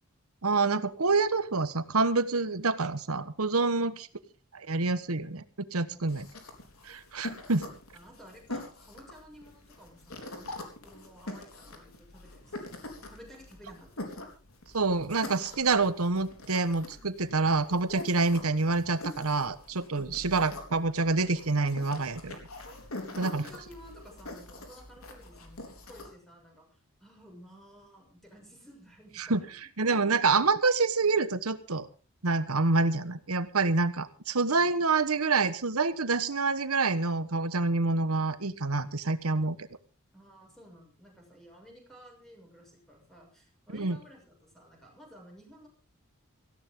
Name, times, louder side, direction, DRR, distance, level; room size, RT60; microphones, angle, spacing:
voice 1, 0.4-3.9 4.5-6.3 6.8-7.6 14.7-22.4 23.2-23.4 29.2-29.4 29.8-31.9 32.2-39.6 43.7-44.0, right 3 dB, 85° right, 13 dB, 1.3 m, -27 dB
sound 1, 6.1-26.1, left 2 dB, 80° left, 4.0 m, -44 dB
voice 2, 7.9-14.0 19.9-20.2 23.1-30.4 40.1-45.7, equal, ahead, 0 dB, 6.4 m, -53 dB
18.5 x 16.0 x 3.8 m, 0.34 s
head